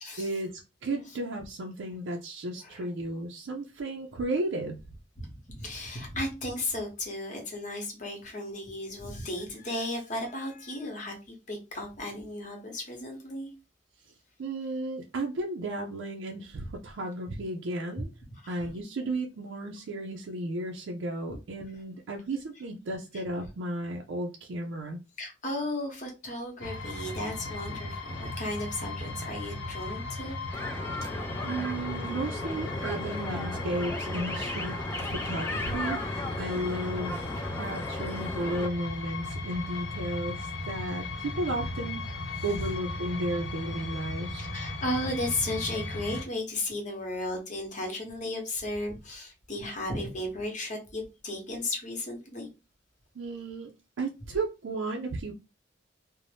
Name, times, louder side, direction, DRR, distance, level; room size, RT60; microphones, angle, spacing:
voice 1, 0.2-4.8 14.4-18.1 18.5-25.0 31.4-34.8 35.0-36.0 36.4-44.5 53.2-53.7 54.0-55.3, right 2 dB, 85° right, 1 dB, 0.4 m, -34 dB
voice 2, 5.2-13.5 17.9-18.0 18.4-18.7 21.3-21.4 23.1-23.2 25.2-30.6 33.1-33.2 33.5-33.6 42.3-42.4 44.4-52.5, left 1 dB, 40° left, 1 dB, 0.9 m, -35 dB
sound 1, 26.6-46.3, left 2 dB, 80° left, 0.7 m, -36 dB
sound 2, 30.5-38.7, left 2 dB, 15° left, 0.3 m, -36 dB
2.6 x 2.0 x 3.2 m, 0.28 s
head